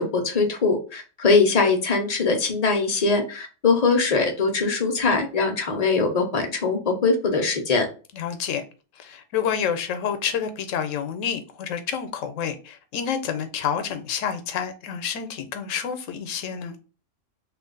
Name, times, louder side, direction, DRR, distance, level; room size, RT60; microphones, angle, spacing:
voice 1, 0.0-7.9, left 4 dB, 40° left, 0.6 m, -22 dB
voice 2, 8.1-8.6 9.0-16.8, left 7 dB, 90° left, 1.0 m, -28 dB
3.0 x 2.4 x 3.7 m
omnidirectional pair, 1.3 m